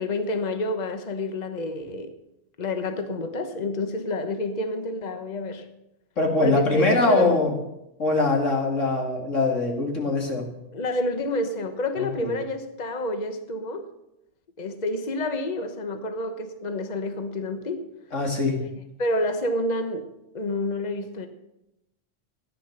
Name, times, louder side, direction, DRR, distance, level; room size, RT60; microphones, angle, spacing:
voice 1, 0.0-2.1 2.6-5.7 6.4-7.4 10.7-13.9 14.6-17.8 18.6-18.7 19.0-20.1 20.3-21.3, left 1 dB, 35° left, 7 dB, 1.2 m, -28 dB
voice 2, 6.2-7.5 8.0-10.5 11.9-12.4 18.1-18.6, left 3 dB, 90° left, 1 dB, 2.9 m, -23 dB
15.5 x 10.5 x 6.6 m, 0.87 s
omnidirectional pair, 1.2 m